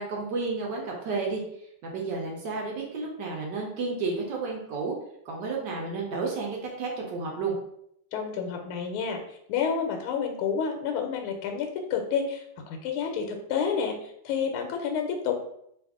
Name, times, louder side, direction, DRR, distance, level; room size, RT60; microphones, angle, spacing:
voice 1, 0.0-1.4 1.8-4.9 5.2-7.5, right 4 dB, 70° right, -1 dB, 1.1 m, -31 dB
voice 2, 8.1-9.2 9.5-15.5, left 6 dB, 80° left, 3 dB, 1.4 m, -29 dB
3.3 x 2.4 x 3.5 m, 0.74 s
omnidirectional pair, 2.4 m